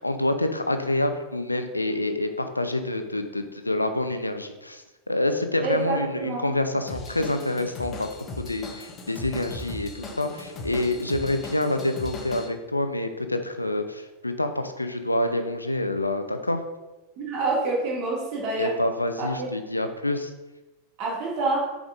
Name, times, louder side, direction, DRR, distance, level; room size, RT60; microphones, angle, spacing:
voice 1, 0.0-8.1 8.4-16.6 18.6-20.3, left 1 dB, 85° left, 8 dB, 0.6 m, -27 dB
voice 2, 5.6-6.5 17.2-18.7 19.2-19.5 21.0-21.7, right 3 dB, 40° right, -2 dB, 2.2 m, -27 dB
Drum kit / Drum, 6.9-12.5, left 3 dB, 30° left, 1.0 m, -38 dB
6.8 x 5.0 x 3.9 m, 1.1 s
figure-of-eight pair, 90°, 0 cm